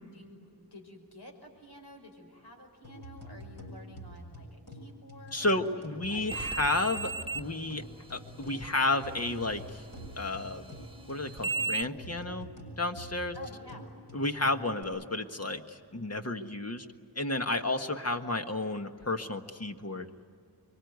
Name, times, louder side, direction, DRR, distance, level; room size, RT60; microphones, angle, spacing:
voice 1, 0.1-5.6 5.9-7.2 13.3-13.9, equal, 70° left, 2 dB, 5.7 m, -51 dB
sound 1, 2.8-14.8, equal, 50° left, 7.1 m, -47 dB
voice 2, 5.3-7.8 8.1-9.8 10.2-10.7 11.1-12.5 12.8-13.3 14.1-16.8 17.1-20.1, left 2 dB, 35° left, 6 dB, 1.5 m, -32 dB
sound 2, 6.3-11.8, right 4 dB, 15° right, 1.2 m, -38 dB
25.0 x 23.0 x 9.5 m, 2.4 s
wide cardioid pair, 75°, 41 cm